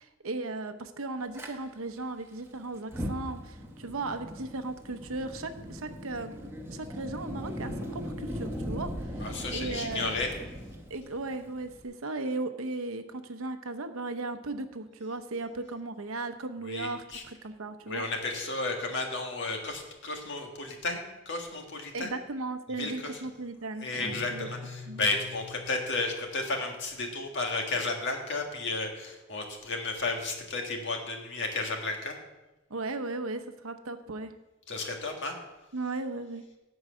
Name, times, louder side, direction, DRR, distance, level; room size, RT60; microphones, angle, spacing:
voice 1, 0.0-6.4 6.7-10.2 10.9-18.0 21.9-24.5 24.9-25.1 32.7-34.3 35.7-36.4, right 2 dB, 75° right, 8 dB, 0.8 m, -36 dB
Fire, 1.3-1.5 2.8-11.8, equal, 10° right, 1.1 m, -39 dB
voice 2, 9.2-10.3 16.6-17.2 17.9-21.0 21.3-22.1 22.8-23.1 23.8-32.2 34.7-35.4, left 3 dB, 60° left, 2 dB, 1.6 m, -33 dB
Guitar, 23.9-26.5, left 3 dB, 35° left, 2.7 m, -44 dB
11.0 x 4.7 x 7.6 m, 1.1 s
head